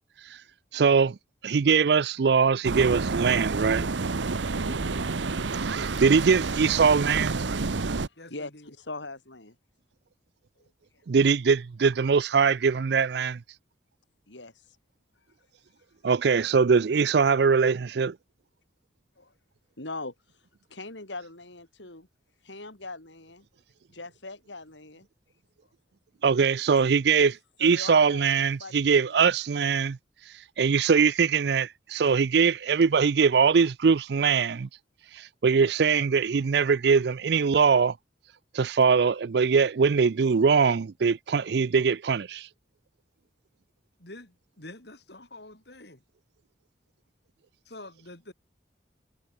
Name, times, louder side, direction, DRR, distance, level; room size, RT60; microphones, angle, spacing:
voice 1, 0.7-1.2 1.4-3.9 5.6-7.4 11.1-13.4 16.0-18.1 26.2-27.3 27.6-30.0 30.6-34.7 35.1-38.0 38.5-42.5, right 5 dB, 65° right, 0.4 m, -22 dB
sound 1, 2.6-8.1, right 3 dB, 85° right, 0.9 m, -29 dB
voice 2, 4.5-5.5 8.3-9.5 10.6-10.7 14.3-14.5 19.2-19.3 19.8-20.1 20.7-22.1 22.4-23.4 23.9-25.1 27.2-27.3 27.6-29.3, left 2 dB, 85° left, 6.7 m, -41 dB
voice 3, 8.2-8.7 44.0-46.0 47.7-48.3, left 2 dB, 65° left, 5.4 m, -46 dB
head